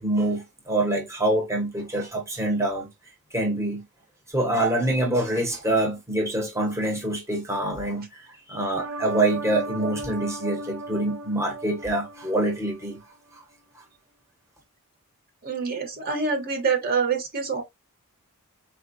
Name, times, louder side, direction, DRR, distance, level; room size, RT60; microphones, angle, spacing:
voice 1, 0.0-2.9 3.3-3.8 4.3-13.0 13.3-13.4, right 1 dB, 15° right, 0.9 m, -25 dB
sound 1, 8.7-13.0 13.3-13.4, right 3 dB, 70° right, 0.6 m, -36 dB
voice 2, 15.4-17.6, right 5 dB, 45° right, 1.0 m, -26 dB
4.3 x 2.2 x 2.5 m
head